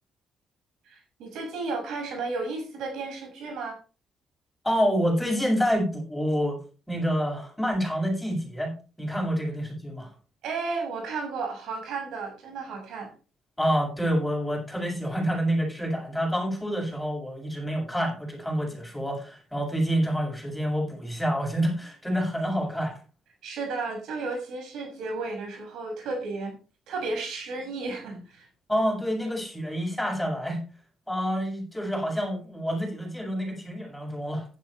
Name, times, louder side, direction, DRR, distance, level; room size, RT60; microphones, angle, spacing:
voice 1, 0.8-3.8 10.4-13.1 23.4-26.5 26.9-28.5, right 3 dB, 80° right, 2 dB, 6.8 m, -33 dB
voice 2, 4.6-6.6 6.9-10.1 13.6-23.0 28.7-30.6 31.1-34.5, equal, 5° left, 0 dB, 7.6 m, -27 dB
14.5 x 11.5 x 3.4 m, 0.35 s
cardioid pair, 90°, 0 cm